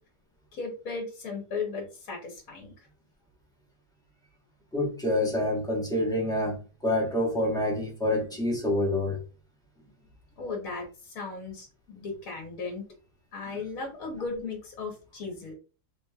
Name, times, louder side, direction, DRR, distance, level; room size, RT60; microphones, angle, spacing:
voice 1, 0.5-2.9 10.4-12.8 13.3-15.5, left 4 dB, 60° left, 1.3 m, -36 dB
voice 2, 4.7-6.6 6.8-9.2, left 1 dB, 5° left, 0.7 m, -27 dB
3.7 x 3.0 x 2.2 m
omnidirectional pair, 1.8 m